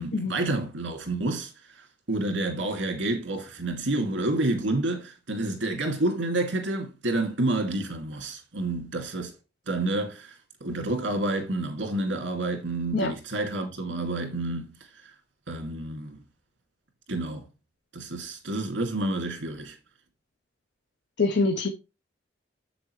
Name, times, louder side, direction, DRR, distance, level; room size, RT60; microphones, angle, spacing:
voice 1, 0.0-9.3 9.7-14.8 15.5-16.2 17.1-17.5 17.9-19.8, right 2 dB, 90° right, 2.3 m, -29 dB
voice 2, 21.2-21.7, left 3 dB, 65° left, 0.8 m, -24 dB
7.7 x 6.8 x 3.1 m
head